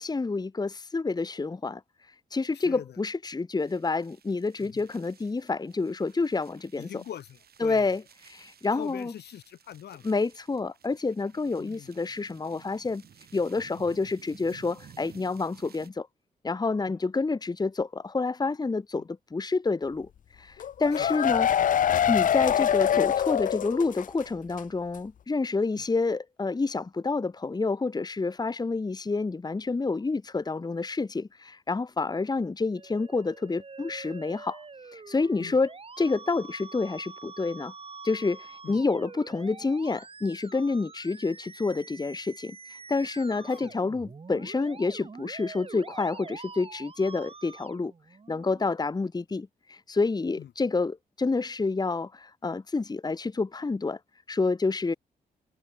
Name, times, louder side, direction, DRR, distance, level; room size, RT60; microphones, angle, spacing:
voice 1, 0.0-1.8 2.3-7.0 7.6-8.0 8.3-9.1 10.0-13.0 13.3-16.1 16.4-20.1 20.4-21.5 22.1-34.6 34.9-35.7 36.0-37.7 38.0-42.6 42.9-47.9 48.3-54.0 54.3-54.9, left 3 dB, 25° left, 1.1 m, -28 dB
voice 2, 2.5-3.0 4.6-4.8 6.8-8.0 8.7-10.1 11.6-11.9 16.9-17.0 18.9-19.1 20.9-21.2 25.8-25.9 35.4-35.6 38.6-38.8 43.6-43.8 50.4-50.5, left 10 dB, 85° left, 2.7 m, -43 dB
sound 1, 3.6-15.9, right 8 dB, 70° right, 5.5 m, -55 dB
sound 2, 20.6-24.2 24.5-24.6 24.9-25.0, left 9 dB, 55° left, 0.5 m, -24 dB
Musical instrument, 32.8-48.7, right 4 dB, 35° right, 2.3 m, -46 dB
cardioid pair, 80°, 17 cm